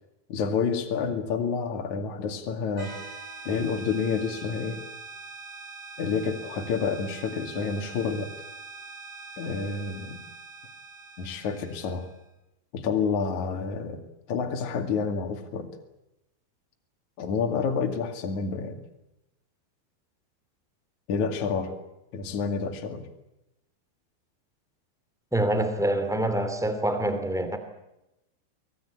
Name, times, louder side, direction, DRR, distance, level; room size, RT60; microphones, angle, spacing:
voice 1, 0.3-3.0 3.4-4.8 6.0-8.3 9.4-10.2 11.2-12.1 12.7-15.7 17.2-18.8 21.1-21.8 22.1-23.1, left 5 dB, 50° left, 3.1 m, -29 dB
sound 1, 2.8-12.2, right 3 dB, 75° right, 9.8 m, -43 dB
voice 2, 25.3-27.6, right 1 dB, ahead, 0.8 m, -26 dB
24.5 x 20.0 x 8.7 m
omnidirectional pair, 5.3 m